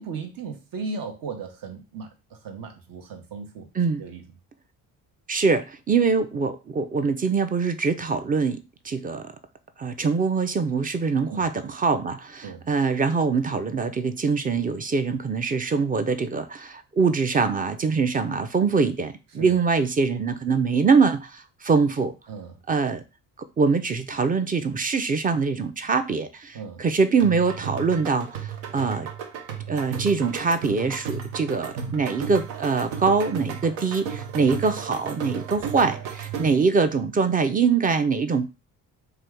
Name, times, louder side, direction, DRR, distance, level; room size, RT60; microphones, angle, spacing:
voice 1, 0.0-4.2 11.3-11.5 12.4-12.6 19.4-19.6 22.3-22.6 26.5-26.8 34.4-34.6 36.4-36.6, right 4 dB, 60° right, 0.9 m, -37 dB
voice 2, 5.3-8.6 8.8-9.3 9.8-22.1 22.7-23.0 23.6-29.1 29.7-38.5, right 5 dB, 20° right, 0.4 m, -23 dB
sound 1, 27.2-36.7, right 7 dB, 85° right, 0.6 m, -34 dB
2.8 x 2.3 x 3.5 m
supercardioid pair, 60°, 39 cm